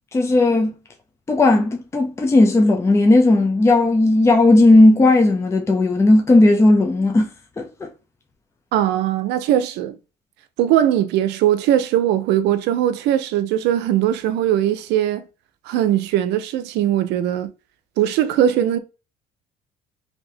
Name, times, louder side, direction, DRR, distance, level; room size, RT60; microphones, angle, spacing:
voice 1, 0.1-0.7 1.3-7.3 7.6-7.7, left 2 dB, 15° left, 0.5 m, -15 dB
voice 2, 8.7-10.0 10.6-15.2 15.7-17.5 18.0-18.8, right 11 dB, 85° right, 0.5 m, -20 dB
2.8 x 2.6 x 3.2 m
cardioid pair, 110°, 17 cm